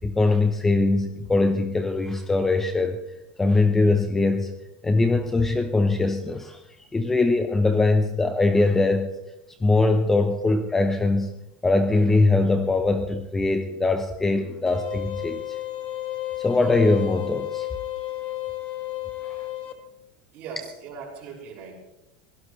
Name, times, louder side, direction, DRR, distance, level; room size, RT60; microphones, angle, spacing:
voice 1, 0.0-3.0 3.4-4.6 4.8-6.6 6.9-9.2 9.6-11.4 11.6-15.6 16.4-17.7 19.2-19.4, left 3 dB, 10° left, 7 dB, 0.8 m, -22 dB
sound 1, 14.7-19.7, left 14 dB, 30° left, 1.5 m, -32 dB
voice 2, 20.3-21.8, right 5 dB, 35° right, -2 dB, 6.0 m, -39 dB
23.5 x 17.0 x 3.2 m, 0.93 s
supercardioid pair, 175°, 4 cm